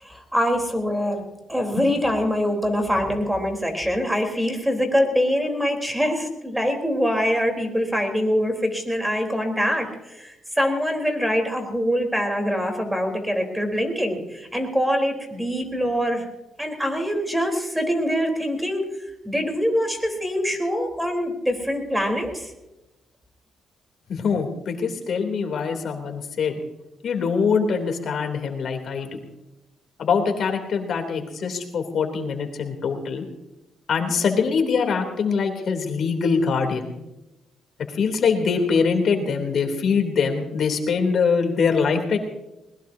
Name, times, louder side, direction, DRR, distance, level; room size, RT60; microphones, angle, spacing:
voice 1, 0.0-1.2 1.5-16.2 16.6-18.8 19.2-22.5, equal, 5° right, 4 dB, 3.9 m, -24 dB
voice 2, 24.1-26.6 27.0-29.1 30.0-33.2 33.9-36.9 37.9-42.2, left 5 dB, 60° left, 4 dB, 3.2 m, -23 dB
21.0 x 20.0 x 2.8 m, 0.94 s
cardioid pair, 90°, 0 cm